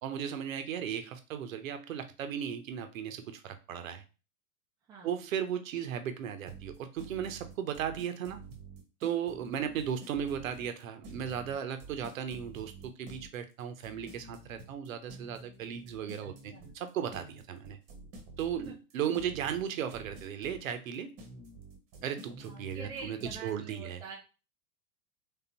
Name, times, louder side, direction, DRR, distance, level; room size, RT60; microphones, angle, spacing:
voice 1, 0.0-4.0 5.0-8.4 9.0-17.8 18.4-21.1 22.0-24.0, right 8 dB, 60° right, 8 dB, 0.8 m, -36 dB
voice 2, 4.9-5.2 16.2-16.7 18.7-18.8 22.4-24.2, right 4 dB, 10° right, -2 dB, 0.4 m, -46 dB
sound 1, 6.5-23.5, right 3 dB, 30° right, 1.0 m, -49 dB
3.7 x 3.3 x 2.9 m, 0.33 s
figure-of-eight pair, 95°, 46 cm